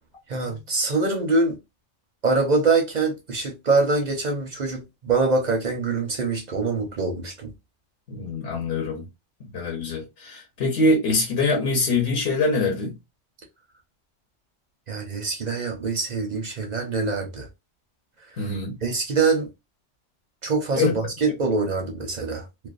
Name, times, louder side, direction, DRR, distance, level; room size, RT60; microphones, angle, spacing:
voice 1, 0.3-1.6 2.2-7.5 14.9-17.5 18.8-19.5 20.4-22.7, right 3 dB, 50° right, 0.6 m, -24 dB
voice 2, 8.1-9.1 9.5-12.9 18.4-18.8 20.7-21.0, left 2 dB, 60° left, 1.0 m, -24 dB
2.5 x 2.2 x 2.4 m
omnidirectional pair, 1.3 m